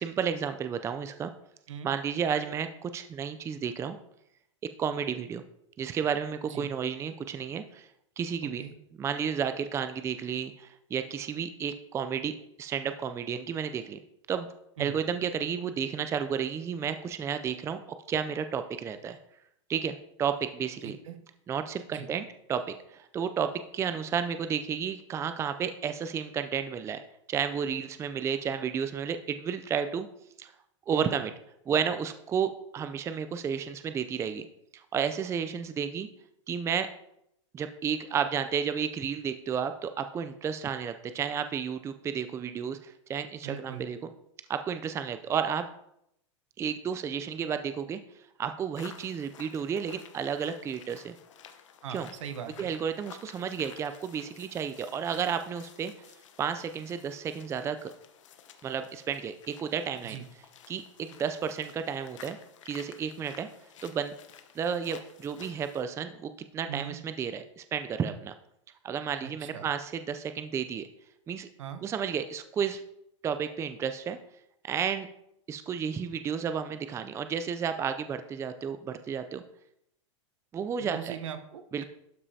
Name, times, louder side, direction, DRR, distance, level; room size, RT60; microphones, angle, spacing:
voice 1, 0.0-1.3 1.8-4.0 4.8-5.4 5.8-7.9 8.2-8.6 9.0-14.0 14.3-14.5 14.8-17.8 18.1-19.2 19.7-21.0 21.5-22.6 22.9-27.0 27.3-30.1 30.4-30.5 30.9-31.3 31.7-34.5 34.7-36.1 36.5-36.9 37.5-44.1 44.5-45.6 46.6-48.0 48.4-51.2 51.9-52.1 52.6-55.9 56.4-57.9 58.6-60.2 60.7-62.4 62.7-63.5 63.8-64.2 64.6-68.3 68.8-70.9 71.3-71.5 71.8-72.8 73.2-74.2 74.6-75.1 75.5-79.4 80.5-81.2 81.7-81.8, right 7 dB, 15° right, 10 dB, 0.4 m, -32 dB
voice 2, 8.4-8.7 14.8-15.0 20.8-21.2 21.9-22.1 30.9-31.1 43.4-43.9 51.8-52.7 60.0-60.3 66.7-67.0 69.2-69.7 71.6-71.8 80.8-81.8, right 9 dB, 80° right, 9 dB, 1.0 m, -40 dB
sound 1, 48.8-65.8, left 8 dB, 75° left, 0.9 m, -53 dB
12.0 x 5.4 x 2.8 m, 0.78 s
hypercardioid pair, 115°, 16 cm